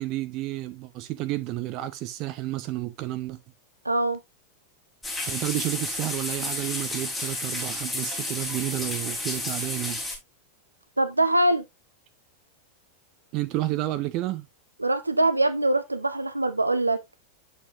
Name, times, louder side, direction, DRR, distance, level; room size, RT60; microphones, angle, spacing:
voice 1, 0.0-3.4 5.2-10.0 13.3-14.5, right 16 dB, 40° right, 0.8 m, -31 dB
voice 2, 3.8-4.2 11.0-11.6 14.8-17.0, right 1 dB, 85° right, 0.9 m, -23 dB
sound 1, 5.0-10.2, left 2 dB, 10° left, 3.6 m, -31 dB
8.4 x 7.3 x 2.6 m
figure-of-eight pair, 90°, 0 cm